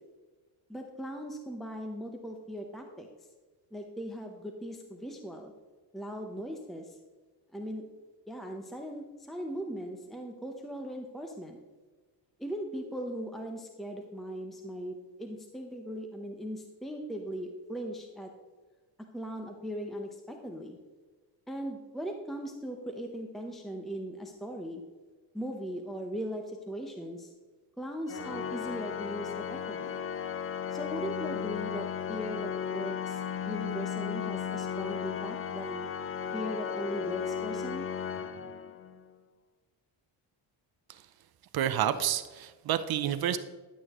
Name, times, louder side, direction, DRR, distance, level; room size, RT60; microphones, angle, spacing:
voice 1, 0.7-3.1 3.7-5.5 5.9-7.0 7.5-7.8 8.3-11.6 12.4-18.3 19.1-20.8 21.5-24.8 25.3-27.3 27.8-30.0 30.7-35.9 36.3-37.9, equal, ahead, 3 dB, 0.8 m, -39 dB
Organ, 28.1-39.0, left 7 dB, 30° left, 0.6 m, -35 dB
voice 2, 41.5-43.4, right 10 dB, 60° right, 12 dB, 0.7 m, -29 dB
11.5 x 8.7 x 3.0 m, 1.4 s
cardioid pair, 125°, 42 cm